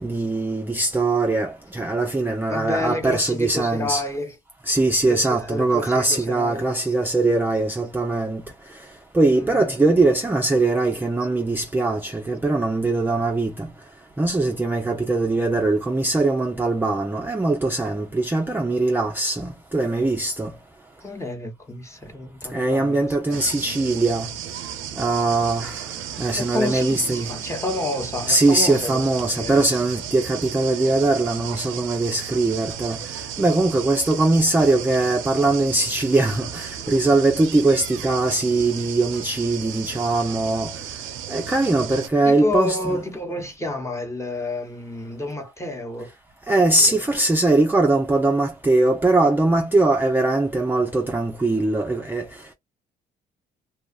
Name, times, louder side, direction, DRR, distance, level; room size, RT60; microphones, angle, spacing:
voice 1, 0.0-4.0 4.7-8.4 9.1-13.7 14.2-20.5 22.5-24.3 25.0-27.4 28.3-40.7 41.3-42.9 46.5-52.3, right 2 dB, 10° right, 0.4 m, -21 dB
voice 2, 2.5-4.3 5.0-6.7 9.3-9.8 21.0-23.5 26.4-29.6 42.2-46.1 46.9-47.0, left 2 dB, 15° left, 0.9 m, -30 dB
sound 1, 23.3-42.1, right 9 dB, 80° right, 0.5 m, -34 dB
2.7 x 2.3 x 2.3 m
cardioid pair, 90°, 20 cm